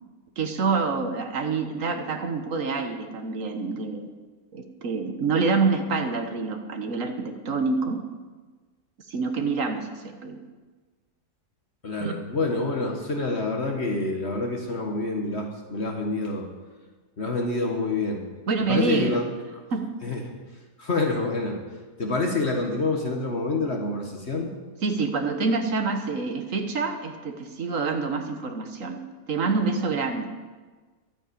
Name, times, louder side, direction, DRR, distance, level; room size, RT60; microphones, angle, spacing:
voice 1, 0.4-4.1 4.5-8.0 9.1-10.4 12.0-12.1 18.5-19.2 19.7-19.9 24.8-29.0 29.3-30.3, right 4 dB, 60° right, 6 dB, 1.6 m, -27 dB
voice 2, 11.8-16.5 17.2-18.2 18.6-19.3 20.0-20.2 20.8-21.6 22.0-24.5, left 3 dB, 45° left, 2 dB, 1.7 m, -27 dB
12.5 x 9.0 x 8.6 m, 1.3 s
omnidirectional pair, 1.6 m